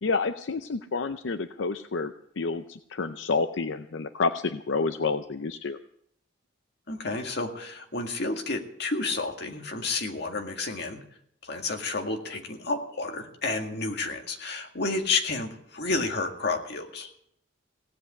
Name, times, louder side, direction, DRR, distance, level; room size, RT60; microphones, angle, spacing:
voice 1, 0.0-5.8, left 4 dB, 90° left, 9 dB, 0.6 m, -29 dB
voice 2, 6.9-11.0 11.4-17.1, left 3 dB, 65° left, 3 dB, 2.0 m, -30 dB
17.0 x 8.0 x 8.4 m, 0.70 s
head